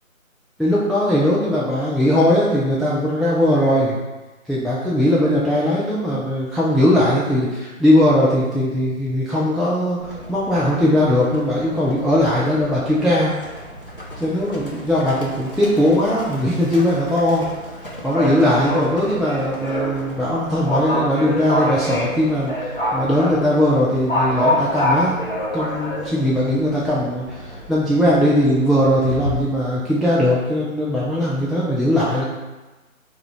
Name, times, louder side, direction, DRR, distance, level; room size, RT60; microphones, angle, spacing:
voice 1, 0.6-4.0 4.5-13.3 14.2-17.5 18.0-25.2 25.5-32.2, left 1 dB, ahead, -8 dB, 0.3 m, -19 dB
Livestock farm animals working animals, 10.0-29.3, left 1 dB, 40° left, 0.6 m, -28 dB
4.7 x 2.4 x 3.0 m, 1.2 s
figure-of-eight pair, 175°, 42 cm